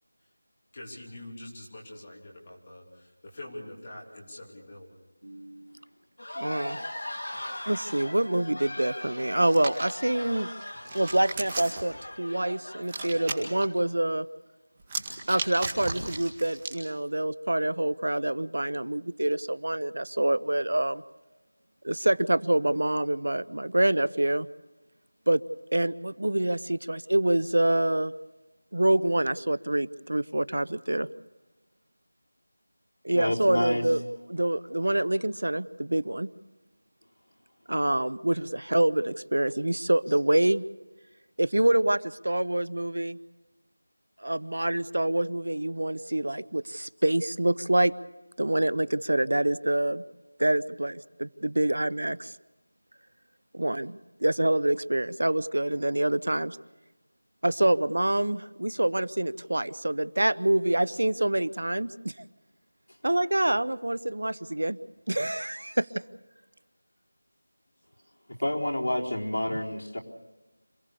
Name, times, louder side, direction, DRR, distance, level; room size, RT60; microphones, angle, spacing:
voice 1, 0.7-4.9 7.3-7.7, left 1 dB, 25° left, -2 dB, 3.2 m, -45 dB
voice 2, 5.2-5.7 6.4-6.8 7.7-10.5 10.9-14.3 15.3-21.0 21.8-24.5 25.3-25.4 25.7-28.1 28.7-31.1 33.0-34.0 34.3-36.3 37.7-40.7 41.4-43.2 44.2-47.9 48.4-50.0 50.4-52.3 53.5-56.6 57.4-62.1 63.0-64.8 65.1-65.9, right 1 dB, 75° right, 18 dB, 0.7 m, -26 dB
sound 1, 6.2-13.7, left 1 dB, 55° left, 3.7 m, -40 dB
Hands, 9.4-9.9 10.6-11.9 12.8-13.6 14.8-16.8, right 2 dB, 15° right, 2.0 m, -35 dB
voice 3, 33.1-33.8 68.4-70.0, left 1 dB, 80° left, -3 dB, 4.0 m, -28 dB
27.0 x 17.5 x 6.8 m, 1.1 s
figure-of-eight pair, 175°, 0 cm